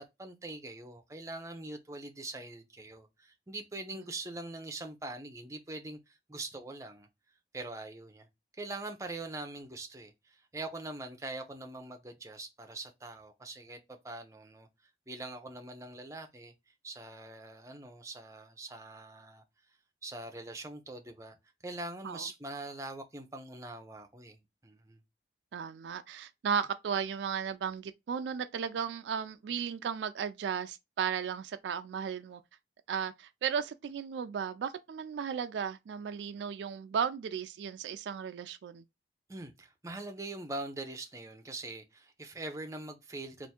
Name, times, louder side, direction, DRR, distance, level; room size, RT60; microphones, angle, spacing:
voice 1, 0.0-7.1 7.5-8.3 8.6-14.7 15.1-16.5 16.8-19.4 20.0-21.4 21.6-25.0 39.3-43.5, right 2 dB, 15° right, 0.6 m, -43 dB
voice 2, 25.5-32.4 32.9-38.8, right 7 dB, 85° right, 0.3 m, -35 dB
3.4 x 2.5 x 4.2 m
head